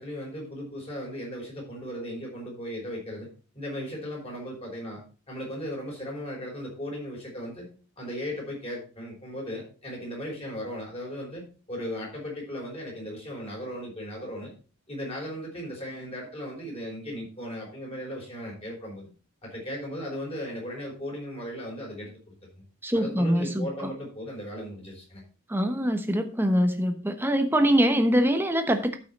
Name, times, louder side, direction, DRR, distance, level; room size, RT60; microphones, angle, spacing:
voice 1, 0.0-3.3 3.5-5.0 5.3-7.7 8.0-11.4 11.7-14.5 14.9-19.0 19.4-22.6 22.9-25.2, equal, 25° left, 5.0 m, -37 dB
voice 2, 22.8-23.9 25.5-29.0, equal, 10° right, 1.0 m, -24 dB
13.0 x 5.7 x 4.1 m
head